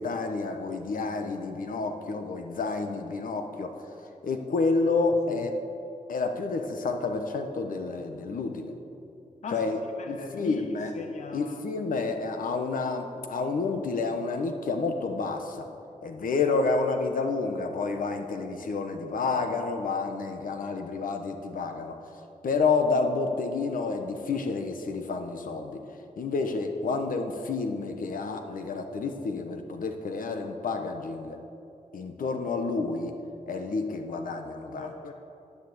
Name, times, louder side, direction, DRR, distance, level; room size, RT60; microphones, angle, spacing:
voice 1, 0.0-3.7 4.2-5.5 6.1-8.7 9.5-9.8 10.1-10.9 11.3-15.7 16.0-21.9 22.4-25.8 26.2-31.4 31.9-33.2 33.5-34.9, left 4 dB, 80° left, 5 dB, 1.1 m, -29 dB
voice 2, 10.0-10.7 11.0-11.6 34.8-35.1, left 5 dB, 55° left, 4 dB, 0.7 m, -39 dB
9.6 x 9.5 x 7.9 m, 2.7 s
wide cardioid pair, 175°, 14 cm